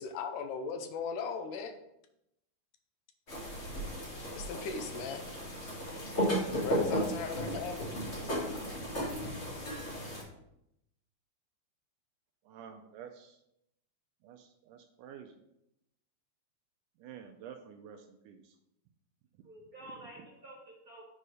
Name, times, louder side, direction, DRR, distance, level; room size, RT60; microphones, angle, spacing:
voice 1, 0.0-1.7 4.4-5.3 6.6-7.9 8.5-8.6 8.9-9.1, left 5 dB, 80° left, 6 dB, 2.3 m, -38 dB
sound 1, 3.3-10.2, equal, 30° left, 1.4 m, -35 dB
voice 2, 6.5-7.2 7.5-7.8 19.4-21.0, right 1 dB, 60° right, -4 dB, 0.9 m, -52 dB
voice 3, 12.5-13.4 14.2-15.4 17.0-18.5, right 8 dB, 80° right, 5 dB, 2.1 m, -50 dB
7.4 x 4.0 x 4.8 m, 0.81 s
omnidirectional pair, 3.7 m